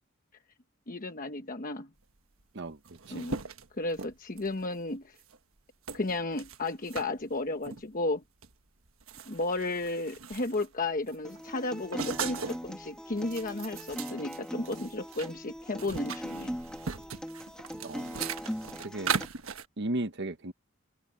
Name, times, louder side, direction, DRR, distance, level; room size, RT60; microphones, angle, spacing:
voice 1, 0.9-1.9 3.1-3.4 3.8-5.1 5.9-8.2 9.3-16.6, left 2 dB, 40° left, 1.1 m, -33 dB
sound 1, 2.4-2.5 2.7-4.6 5.2-5.4 5.9-7.1 7.6-7.8 8.4-8.5 8.9-10.7 11.1-12.7 13.1-15.3 15.6-19.7, right 6 dB, 90° right, 1.3 m, -38 dB
voice 2, 2.5-3.3 17.7-18.2 18.8-19.2 19.8-20.5, right 2 dB, 60° right, 1.1 m, -36 dB
Acoustic guitar, 11.2-19.3, equal, 5° left, 2.0 m, -40 dB
head